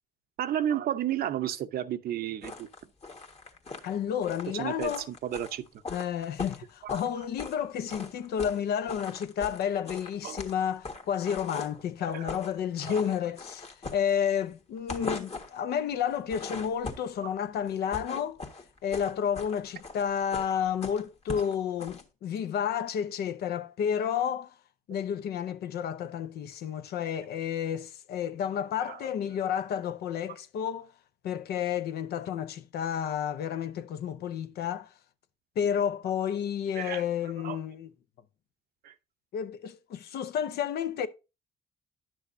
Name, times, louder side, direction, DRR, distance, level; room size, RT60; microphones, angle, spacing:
voice 1, 0.4-2.7 4.5-4.9 5.2-5.6 10.2-10.4 12.1-12.2 28.9-29.0 36.8-37.0 37.4-37.6 38.8-38.9, right 11 dB, 70° right, 0.7 m, -31 dB
sound 1, 2.4-7.6 7.9-8.6 8.9-11.8 12.1-12.5 12.8-14.5 14.8-15.6 16.1-17.2 17.7-22.0, left 3 dB, 40° left, 1.6 m, -40 dB
voice 2, 3.8-5.1 5.9-18.4 18.8-24.6 24.9-30.9 31.2-34.9 35.6-37.9 39.3-41.1, left 8 dB, 75° left, 0.8 m, -31 dB
10.0 x 6.3 x 2.6 m
supercardioid pair, 65°, 16 cm